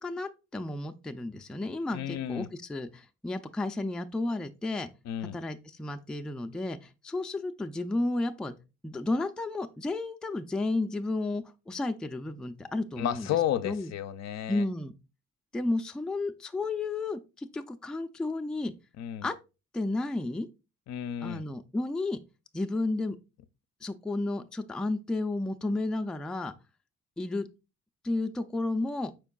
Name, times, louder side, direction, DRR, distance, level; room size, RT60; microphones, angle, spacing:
voice 1, 0.0-4.9 5.3-8.5 8.8-13.3 13.6-13.9 14.5-14.9 15.5-18.7 19.2-19.3 19.7-20.5 21.2-22.2 22.5-23.2 23.8-26.5 27.2-27.5 28.0-29.1, left 2 dB, 5° left, 0.3 m, -32 dB
voice 2, 1.9-2.5 5.1-5.4 13.0-14.6 19.0-19.3 20.9-21.5, left 10 dB, 60° left, 0.5 m, -32 dB
5.0 x 4.4 x 2.3 m
cardioid pair, 90°, 30 cm